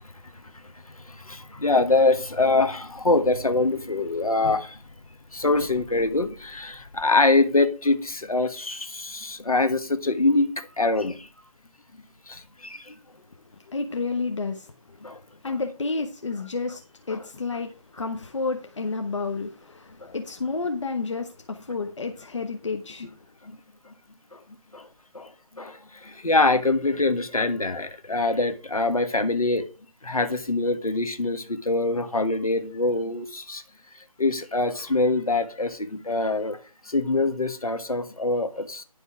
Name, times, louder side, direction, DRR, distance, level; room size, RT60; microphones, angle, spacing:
voice 1, 1.0-4.8 5.3-11.3 12.3-12.9 15.0-15.2 15.4-15.5 17.1-17.2 20.0-20.1 23.4-23.6 24.3-24.4 24.7-24.9 25.1-29.7 30.0-33.6 34.2-36.6 36.8-38.8, left 2 dB, 70° left, 1.4 m, -24 dB
voice 2, 13.7-14.7 15.4-23.1, left 4 dB, 55° left, 1.0 m, -30 dB
10.0 x 5.4 x 4.8 m
figure-of-eight pair, 155°, 19 cm